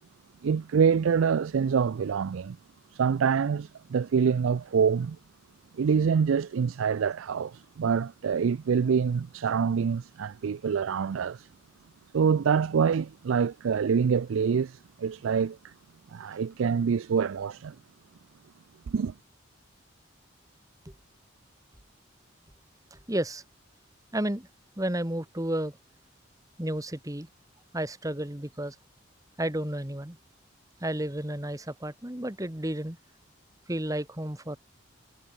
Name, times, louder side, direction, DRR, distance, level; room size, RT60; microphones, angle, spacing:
voice 1, 0.4-2.6 2.9-5.2 5.7-11.5 12.1-15.7 16.1-17.8 18.9-19.1, right 6 dB, 75° right, 0.4 m, -26 dB
voice 2, 22.9-23.4 24.1-24.5 24.8-25.7 26.6-27.3 27.7-28.7 29.4-30.2 30.8-33.0 33.7-34.6, right 1 dB, 15° right, 1.3 m, -32 dB
head